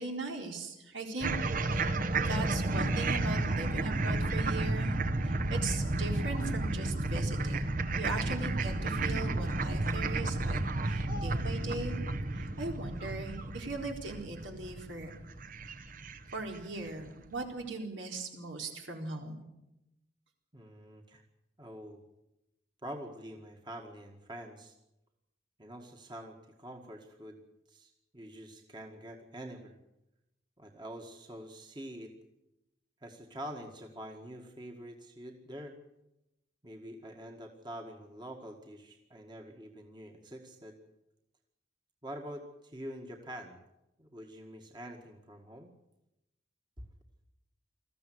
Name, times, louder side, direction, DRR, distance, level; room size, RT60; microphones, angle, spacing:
voice 1, 0.0-1.4 1.6-1.9 2.1-12.0 12.3-15.1 16.3-19.5, right 3 dB, 75° right, 2 dB, 4.2 m, -39 dB
sound 1, 1.2-16.6, right 2 dB, 45° right, 1.3 m, -32 dB
voice 2, 20.5-21.2 21.6-22.0 22.8-24.7 25.6-27.4 27.7-29.8 30.6-32.1 33.0-35.8 36.6-40.8 42.0-43.6 44.0-45.7, equal, 25° right, 2 dB, 1.9 m, -46 dB
20.5 x 14.5 x 9.5 m, 0.90 s
head